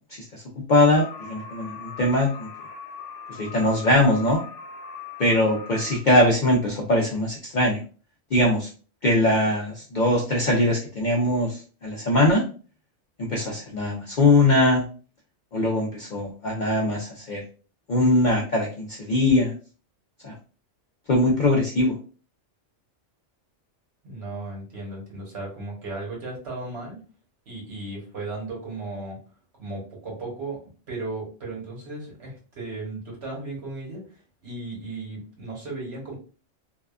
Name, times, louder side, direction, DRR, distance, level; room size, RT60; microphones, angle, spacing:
voice 1, 0.7-2.5 3.3-4.4 5.2-7.8 8.3-8.7 9.0-12.4 13.3-14.8 15.5-17.4 17.9-19.5 20.2-20.3 21.1-21.9, left 1 dB, 60° left, -1 dB, 0.5 m, -21 dB
sound 1, 0.9-6.0, left 6 dB, 80° left, 1.0 m, -40 dB
voice 2, 24.0-27.0 27.5-29.2 29.6-30.6 30.9-36.2, right 2 dB, 60° right, -3 dB, 1.3 m, -35 dB
2.7 x 2.2 x 2.3 m, 0.38 s
omnidirectional pair, 1.2 m